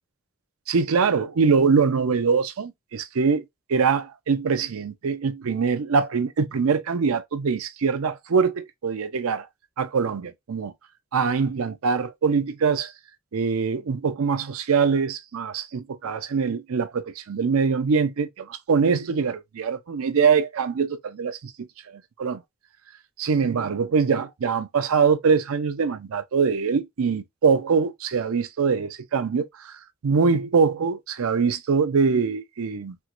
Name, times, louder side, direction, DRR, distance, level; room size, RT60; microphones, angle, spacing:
voice 1, 0.7-3.4 3.7-9.5 9.8-10.7 11.1-12.9 13.3-21.7 21.9-22.4 23.2-29.8 30.0-33.0, right 5 dB, 85° right, 0.5 m, -23 dB
4.4 x 2.1 x 2.4 m
head